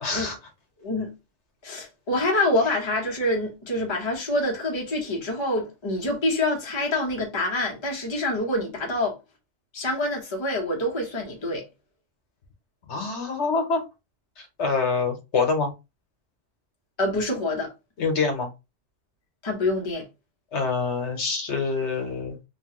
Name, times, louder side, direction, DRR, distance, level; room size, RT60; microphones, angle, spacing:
voice 1, 0.0-0.4 12.9-13.8 14.4-15.7 18.0-18.5 20.5-22.4, left 4 dB, 70° left, 1.2 m, -26 dB
voice 2, 0.8-1.1 1.6-9.2 9.7-11.6 17.0-17.7 19.4-20.1, left 1 dB, 25° left, 0.9 m, -26 dB
3.2 x 2.2 x 2.9 m
omnidirectional pair, 1.2 m